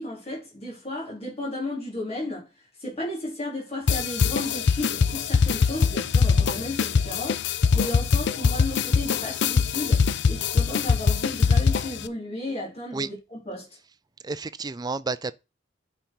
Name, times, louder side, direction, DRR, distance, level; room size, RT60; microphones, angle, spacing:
voice 1, 0.0-2.5 2.8-13.7, left 1 dB, 30° left, 3.8 m, -34 dB
sound 1, 3.9-12.1, left 5 dB, 60° left, 0.5 m, -22 dB
voice 2, 14.2-15.3, right 3 dB, 20° right, 0.4 m, -31 dB
8.8 x 5.4 x 4.5 m
head